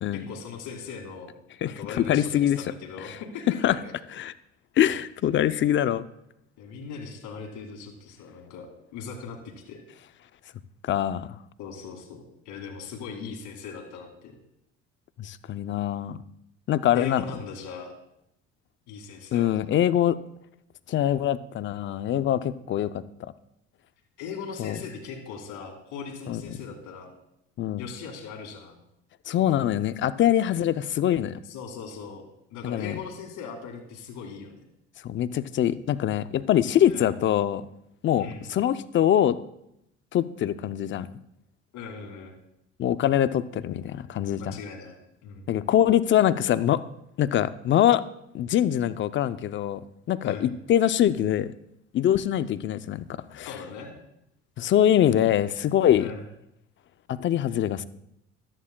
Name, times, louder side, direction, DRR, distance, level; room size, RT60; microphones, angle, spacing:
voice 1, 0.1-1.3 1.6-3.9 6.6-9.8 11.6-14.4 16.9-17.9 18.9-19.6 24.2-27.1 27.8-28.8 31.4-32.2 32.5-34.6 36.9-37.1 38.2-38.5 41.7-42.3 44.4-45.0 45.2-45.4 50.2-50.5 53.4-53.9 56.0-56.2, left 5 dB, 75° left, 3 dB, 2.2 m, -39 dB
voice 2, 1.6-2.6 3.6-3.8 4.2-4.3 4.8-6.1 10.9-11.3 15.2-16.2 16.7-17.2 19.3-20.2 20.9-22.9 24.6-24.8 26.3-26.4 27.6-27.9 29.3-31.4 32.6-33.0 35.0-37.6 38.0-39.4 40.1-41.1 42.8-44.5 45.5-46.8 47.2-48.0 48.3-49.8 50.1-51.5 51.9-53.1 53.3-53.5 54.6-56.1 57.1-57.8, left 11 dB, 40° left, 13 dB, 0.5 m, -23 dB
14.5 x 11.0 x 2.2 m, 0.80 s
cardioid pair, 110°, 30 cm